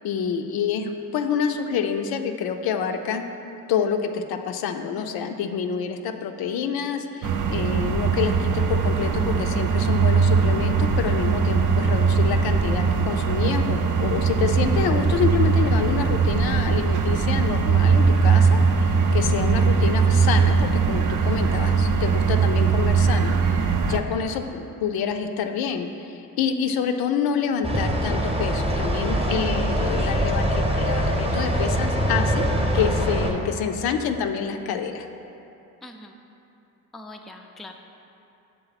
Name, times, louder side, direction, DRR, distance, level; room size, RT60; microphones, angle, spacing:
voice 1, 0.0-3.2 3.7-23.3 23.6-32.4 32.7-35.1, left 7 dB, 75° left, 6 dB, 0.5 m, -27 dB
sound 1, 7.2-24.0, right 5 dB, 55° right, 0.5 m, -20 dB
sound 2, 27.6-33.3, equal, 15° right, 0.8 m, -23 dB
voice 2, 35.8-36.2 36.9-37.7, left 2 dB, ahead, 3 dB, 0.3 m, -42 dB
6.8 x 3.7 x 4.0 m, 2.8 s
cardioid pair, 75°, 37 cm